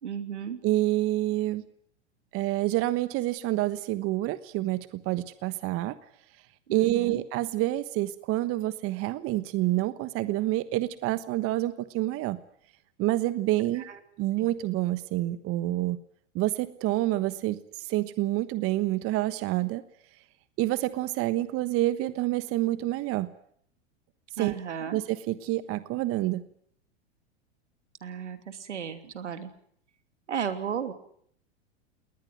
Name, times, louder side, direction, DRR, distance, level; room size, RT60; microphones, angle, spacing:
voice 1, 0.0-0.6 6.7-7.2 13.8-14.0 14.4-14.5 24.4-25.0 28.0-29.5 30.3-30.9, right 8 dB, 85° right, 9 dB, 3.0 m, -34 dB
voice 2, 0.6-1.6 2.3-6.0 6.7-12.4 13.0-13.9 14.2-16.0 16.3-19.8 20.6-23.3 24.4-24.5 24.9-26.5, right 16 dB, 40° right, 13 dB, 1.3 m, -28 dB
21.0 x 19.0 x 9.3 m, 0.65 s
hypercardioid pair, 105°, 34 cm